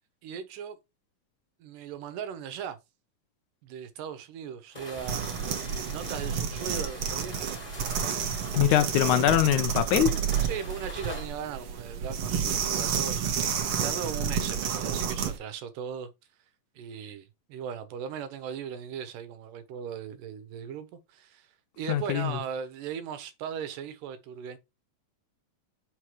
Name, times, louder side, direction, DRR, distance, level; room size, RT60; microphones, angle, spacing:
voice 1, 0.2-0.8 1.6-2.8 3.6-5.3 5.9-7.6 10.4-16.1 16.8-21.5 21.8-24.6, right 7 dB, 80° right, 2.4 m, -38 dB
sound 1, 4.7-11.3, left 1 dB, 15° left, 1.4 m, -43 dB
sound 2, 5.0-15.4, right 7 dB, 65° right, 1.5 m, -30 dB
voice 2, 8.6-10.1 21.9-22.4, left 11 dB, 75° left, 1.9 m, -23 dB
6.2 x 5.8 x 2.9 m
omnidirectional pair, 3.8 m